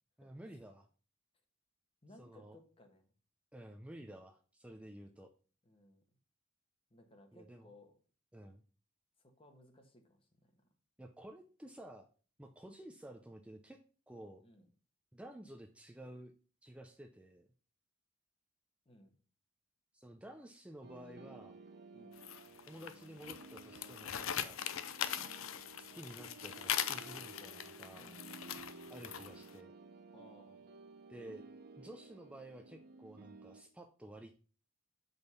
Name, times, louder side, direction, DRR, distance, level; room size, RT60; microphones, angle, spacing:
voice 1, 0.2-0.9 2.2-2.6 3.5-5.3 7.3-7.7 8.3-8.6 11.0-12.1 12.4-13.8 14.1-14.4 15.1-16.3 16.6-17.5 19.9-21.6 22.7-24.6 25.8-28.1 28.9-29.7 31.1-31.4 31.8-34.3, right 1 dB, 5° right, 3 dB, 0.5 m, -52 dB
voice 2, 2.0-3.1 5.6-6.0 6.9-7.9 9.2-10.6 14.4-14.7 18.8-19.1 21.9-22.2 28.0-28.7 30.1-30.6, left 1 dB, 25° left, 5 dB, 1.3 m, -61 dB
sound 1, 20.8-33.6, right 3 dB, 50° right, 0.8 m, -55 dB
sound 2, 22.2-29.5, left 9 dB, 75° left, 0.6 m, -41 dB
6.3 x 5.3 x 5.4 m, 0.39 s
head